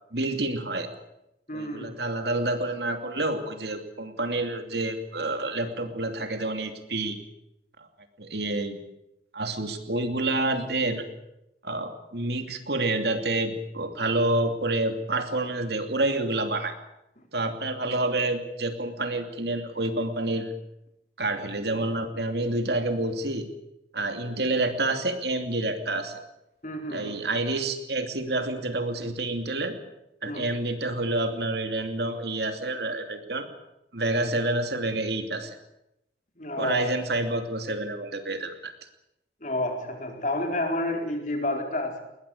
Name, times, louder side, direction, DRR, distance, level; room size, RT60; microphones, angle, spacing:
voice 1, 0.1-0.9 1.5-7.2 7.8-7.9 8.2-8.8 9.3-11.0 11.6-16.8 17.3-20.5 21.2-23.5 23.9-26.2 26.9-29.8 30.2-33.5 33.9-35.6 36.6-38.7, right 2 dB, 70° right, 7 dB, 2.8 m, -28 dB
voice 2, 1.5-2.0 26.6-27.2 30.2-30.5 36.4-36.9 39.4-42.0, left 1 dB, 45° left, 3 dB, 4.4 m, -30 dB
20.5 x 20.5 x 8.7 m, 0.86 s
head